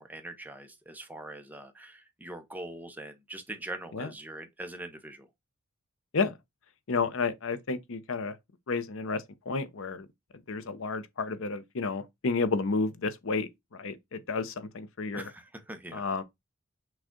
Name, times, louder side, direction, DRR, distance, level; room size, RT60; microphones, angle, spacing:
voice 1, 0.0-5.3 15.1-16.0, right 1 dB, 10° right, 0.7 m, -42 dB
voice 2, 6.9-8.4 8.7-10.1 10.5-15.3 15.9-16.2, left 4 dB, 65° left, 0.6 m, -31 dB
6.2 x 2.3 x 3.7 m
head